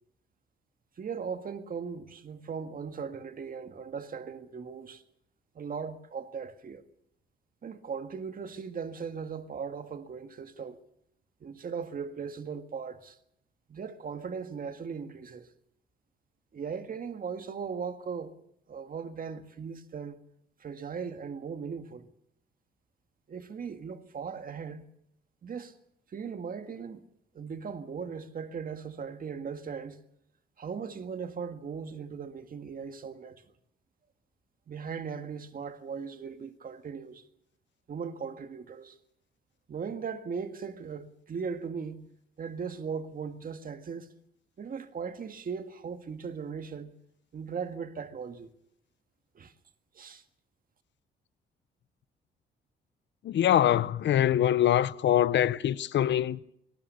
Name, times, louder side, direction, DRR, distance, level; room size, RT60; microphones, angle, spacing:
voice 1, 1.0-5.0 5.6-6.8 7.6-10.8 11.4-13.2 13.7-15.5 16.5-18.3 18.7-20.2 20.6-22.1 23.3-24.9 25.4-25.7 26.1-27.0 27.3-30.0 30.6-33.4 34.7-37.2 37.9-39.0 39.7-42.1 42.4-44.1 44.6-46.9 47.3-48.5 49.4-49.5 50.0-50.2, right 6 dB, 45° right, 1.8 m, -38 dB
voice 2, 53.2-56.4, left 11 dB, 65° left, 0.9 m, -24 dB
23.5 x 19.0 x 6.8 m
cardioid pair, 90°, 20 cm